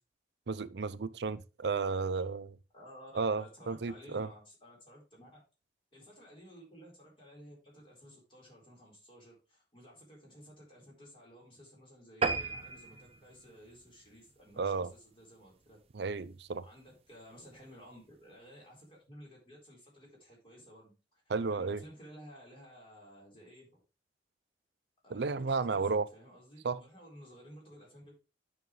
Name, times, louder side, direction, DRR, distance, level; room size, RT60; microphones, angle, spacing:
voice 1, 0.5-2.6 3.1-4.3 14.6-14.9 15.9-16.7 21.3-21.8 25.1-26.1 26.6-26.8, right 4 dB, 65° right, 0.5 m, -33 dB
voice 2, 2.7-5.4 5.9-15.8 16.6-20.9 21.5-23.8 25.0-28.2, equal, 30° left, 4.1 m, -54 dB
sound 1, 12.2-15.0 15.4-15.6 16.1-16.2 16.5-16.6 16.8-16.9, right 4 dB, 35° right, 0.7 m, -36 dB
9.3 x 6.0 x 3.1 m
head